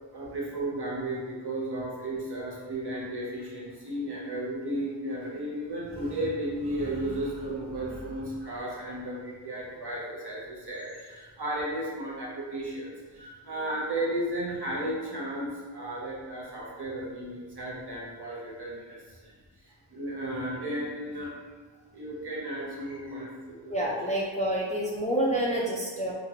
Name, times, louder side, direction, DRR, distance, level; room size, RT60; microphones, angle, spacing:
voice 1, 0.1-21.3 21.9-23.7, right 1 dB, 55° right, -5 dB, 0.9 m, -34 dB
voice 2, 23.7-26.1, right 1 dB, 15° left, -6 dB, 0.4 m, -28 dB
2.8 x 2.4 x 2.8 m, 1.4 s
wide cardioid pair, 65°, 48 cm